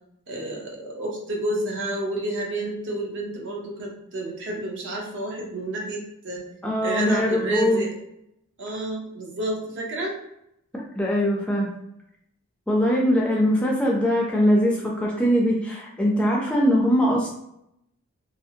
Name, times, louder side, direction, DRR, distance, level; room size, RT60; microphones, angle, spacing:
voice 1, 0.3-6.4 6.8-7.9 8.6-10.2, right 1 dB, 60° right, -1 dB, 0.7 m, -30 dB
voice 2, 6.6-7.8 11.0-11.7 12.7-17.3, equal, 5° left, -3 dB, 0.3 m, -21 dB
2.5 x 2.0 x 2.7 m, 0.78 s
head